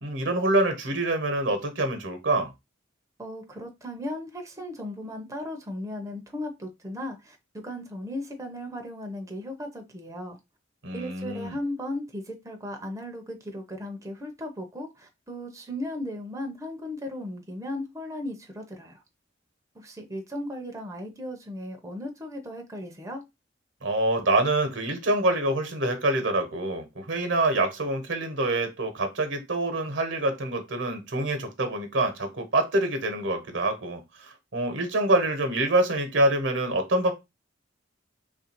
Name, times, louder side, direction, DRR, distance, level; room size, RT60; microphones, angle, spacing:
voice 1, 0.0-2.5 10.8-11.5 23.8-37.1, right 2 dB, 70° right, 1.0 m, -26 dB
voice 2, 3.2-10.4 10.9-19.0 19.7-23.2, left 1 dB, 15° right, 0.6 m, -36 dB
3.3 x 2.5 x 4.3 m
head